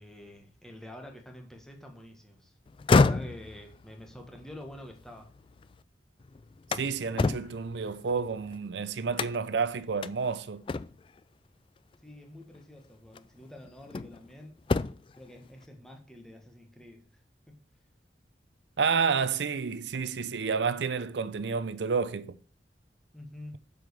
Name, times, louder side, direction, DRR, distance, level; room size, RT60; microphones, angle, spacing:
voice 1, 0.0-2.5 2.9-5.3 12.0-14.6 15.1-17.0 17.5-17.6 23.1-23.6, left 1 dB, 5° left, 1.5 m, -47 dB
sound 1, 2.7-5.8 6.2-8.6 9.1-9.6 10.0-10.1 10.7-11.2 12.4-12.6 13.1-14.3 14.6-15.2, left 3 dB, 30° left, 0.3 m, -29 dB
voice 2, 6.7-10.6 18.8-22.4, right 5 dB, 80° right, 0.6 m, -30 dB
7.6 x 5.0 x 6.9 m
head